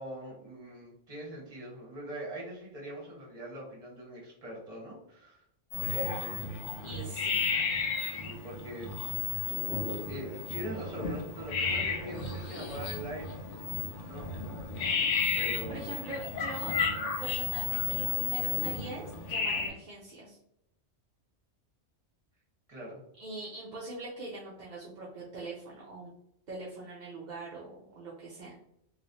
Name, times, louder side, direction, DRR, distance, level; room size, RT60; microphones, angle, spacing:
voice 1, 0.0-5.4 5.8-6.6 8.1-8.9 10.0-13.3 13.8-14.9 15.3-16.1 22.7-23.0, right 1 dB, 30° right, -4 dB, 1.2 m, -43 dB
sound 1, 5.7-19.7, left 5 dB, 75° left, 1.0 m, -33 dB
voice 2, 6.8-7.4 15.7-16.7 17.2-20.4 23.2-26.1 26.5-28.6, right 2 dB, 45° right, -5 dB, 0.7 m, -42 dB
3.0 x 3.0 x 2.6 m, 0.77 s
omnidirectional pair, 1.2 m